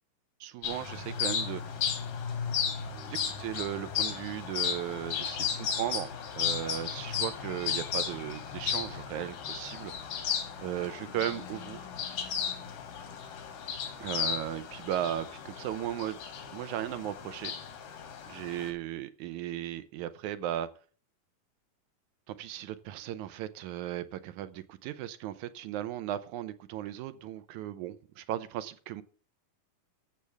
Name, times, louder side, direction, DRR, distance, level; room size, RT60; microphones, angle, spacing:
voice 1, 0.4-1.9 3.0-9.9 10.6-11.8 14.0-16.2 16.5-17.5 18.3-20.7 22.3-29.0, right 12 dB, 75° right, 13 dB, 2.0 m, -36 dB
sound 1, 0.6-18.7, left 7 dB, 85° left, 3.6 m, -35 dB
15.0 x 7.1 x 3.4 m, 0.41 s
omnidirectional pair, 3.7 m